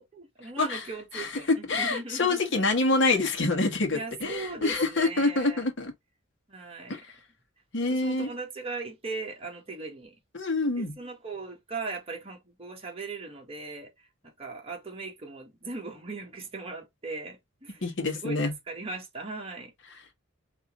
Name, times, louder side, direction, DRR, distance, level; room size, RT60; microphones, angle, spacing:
voice 1, 0.0-2.4 3.9-5.6 6.5-7.0 7.9-10.1 10.7-17.8 18.1-19.7, right 3 dB, 30° right, 1.5 m, -39 dB
voice 2, 1.1-5.9 6.9-7.1 7.7-8.3 10.3-10.9 17.8-18.5, left 3 dB, 60° left, 1.4 m, -26 dB
4.1 x 3.0 x 3.7 m
head